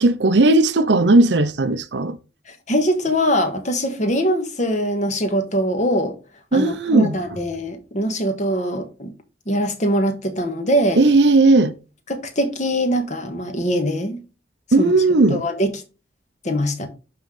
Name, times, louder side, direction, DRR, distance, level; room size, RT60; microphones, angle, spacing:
voice 1, 0.0-2.2 6.5-7.2 11.0-11.7 14.7-15.4, right 2 dB, 75° right, 0.7 m, -16 dB
voice 2, 2.7-6.2 6.5-9.1 9.5-11.0 12.1-14.2 14.8-14.9 15.3-15.7 16.4-16.9, equal, 40° left, 1.5 m, -22 dB
11.5 x 3.9 x 3.2 m
head